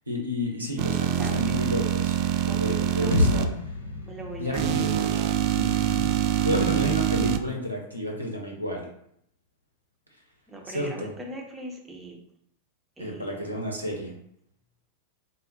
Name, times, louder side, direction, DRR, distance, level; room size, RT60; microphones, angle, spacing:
voice 1, 0.1-2.2 2.4-3.5 4.3-5.2 5.5-8.8 10.6-11.1 13.0-14.1, left 1 dB, 90° right, 0 dB, 0.8 m, -31 dB
sound 1, 0.8-3.4 4.5-7.4, right 11 dB, 45° right, 0.3 m, -25 dB
voice 2, 1.2-1.7 2.5-3.4 4.0-4.7 10.5-12.2 13.0-13.5, right 2 dB, 10° right, -1 dB, 0.8 m, -40 dB
sound 2, 3.1-7.0, left 3 dB, 70° left, 0.6 m, -30 dB
4.2 x 2.1 x 4.0 m, 0.71 s
figure-of-eight pair, 90°, 0 cm